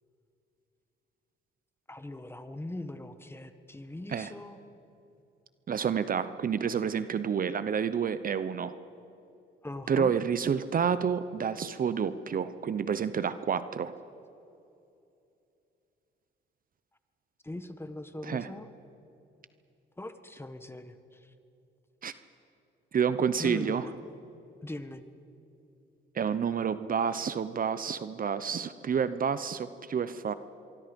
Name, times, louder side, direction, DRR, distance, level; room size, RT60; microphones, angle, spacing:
voice 1, 1.9-4.6 9.6-10.1 17.4-18.7 20.0-21.3 23.4-23.9 24.6-25.0, left 1 dB, 10° left, 9 dB, 1.4 m, -40 dB
voice 2, 5.7-8.7 9.9-13.9 18.2-18.5 22.0-22.1 22.9-23.8 26.1-30.3, right 7 dB, 45° right, 13 dB, 0.8 m, -29 dB
24.5 x 24.0 x 5.3 m, 2.7 s
cardioid pair, 90°, 20 cm